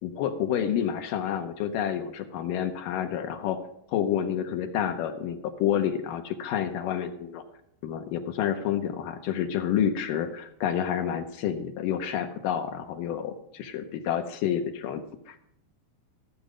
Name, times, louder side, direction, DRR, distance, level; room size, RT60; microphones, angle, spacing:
voice 1, 0.0-3.6 3.9-7.4 7.8-15.0 15.3-15.4, left 9 dB, 75° left, 6 dB, 2.3 m, -29 dB
14.0 x 7.5 x 5.0 m, 0.76 s
omnidirectional pair, 4.1 m